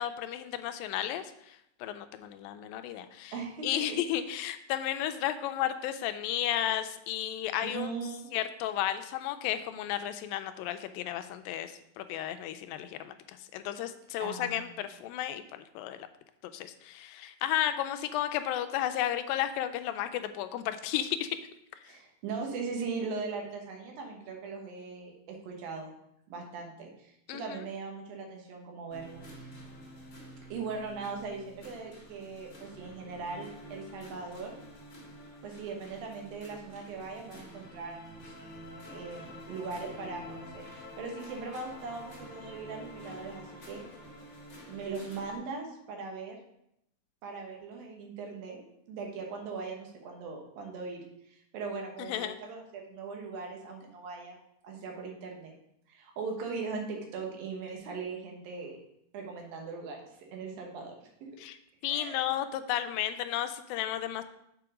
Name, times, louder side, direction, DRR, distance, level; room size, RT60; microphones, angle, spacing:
voice 1, 0.0-3.3 3.6-7.9 8.3-13.1 13.4-16.1 16.4-21.4 27.3-27.4 52.1-52.4 61.4-61.6 61.8-64.2, left 11 dB, 90° left, 9 dB, 2.3 m, -33 dB
voice 2, 3.3-4.0 7.6-8.3 14.2-14.6 21.8-25.9 26.3-29.5 30.5-34.6 35.4-38.3 38.9-43.8 44.7-46.4 47.2-54.4 54.6-55.5 55.9-58.8 59.1-60.0 60.3-60.9 61.9-62.3, right 4 dB, 85° right, 1 dB, 3.0 m, -39 dB
sound 1, 28.9-45.4, equal, 35° left, 1.2 m, -48 dB
7.0 x 4.7 x 4.9 m, 0.78 s
omnidirectional pair, 4.0 m